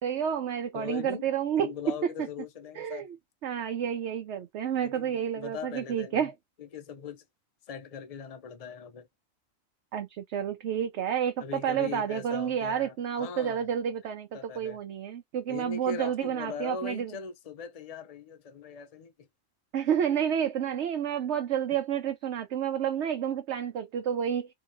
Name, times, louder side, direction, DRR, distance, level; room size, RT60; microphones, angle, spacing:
voice 1, 0.0-1.7 2.0-2.1 2.8-3.1 3.4-6.3 9.9-14.3 14.6-17.1 19.7-24.5, right 9 dB, 65° right, 0.9 m, -30 dB
voice 2, 0.7-1.3 1.6-3.1 4.8-6.3 6.6-7.2 7.7-9.1 11.4-13.6 14.3-14.8 15.5-19.3, left 6 dB, 65° left, 0.3 m, -40 dB
3.8 x 3.0 x 2.6 m
omnidirectional pair, 1.4 m